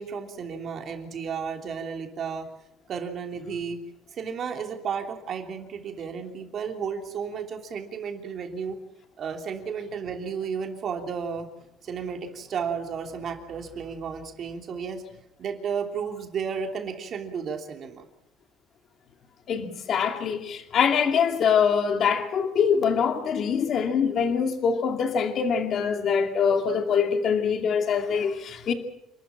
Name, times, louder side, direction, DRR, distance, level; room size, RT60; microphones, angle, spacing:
voice 1, 0.0-2.5 2.9-3.8 4.1-8.8 9.2-11.5 11.8-15.0 15.4-18.0, right 6 dB, 45° right, 4 dB, 3.1 m, -33 dB
voice 2, 19.5-28.7, left 6 dB, 45° left, 6 dB, 2.3 m, -24 dB
28.0 x 13.0 x 8.8 m, 0.82 s
cardioid pair, 140°, 0 cm